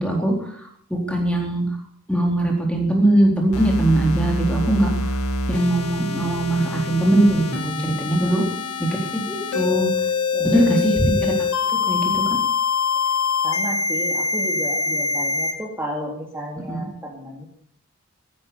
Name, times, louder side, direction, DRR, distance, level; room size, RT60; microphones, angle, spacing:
voice 1, 0.0-1.6 2.1-4.9 5.5-8.5 8.8-9.9 10.4-11.3 11.7-12.4 16.7-16.9, right 1 dB, 5° left, 0 dB, 4.0 m, -21 dB
sound 1, 3.5-15.5, left 4 dB, 85° left, 2.2 m, -24 dB
voice 2, 8.2-8.5 10.3-10.8 13.4-17.5, equal, 10° right, -3 dB, 2.8 m, -33 dB
14.5 x 11.5 x 7.0 m, 0.64 s
head